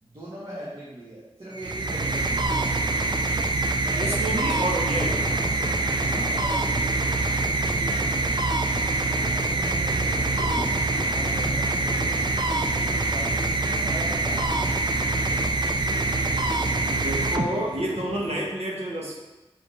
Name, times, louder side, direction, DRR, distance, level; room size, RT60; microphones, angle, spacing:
voice 1, 0.0-2.7 3.8-4.5 6.1-7.0 9.2-10.0 11.1-12.0 12.9-14.8, right 1 dB, 60° right, -8 dB, 1.5 m, -40 dB
sound 1, 1.5-18.0, right 2 dB, 45° right, 0.5 m, -25 dB
voice 2, 4.0-5.3 7.7-8.1 16.8-19.2, right 1 dB, 90° right, -3 dB, 1.3 m, -29 dB
sound 2, 4.1-18.5, left 2 dB, 60° left, 0.5 m, -41 dB
6.2 x 4.9 x 3.3 m, 1.1 s
wide cardioid pair, 55°, 10 cm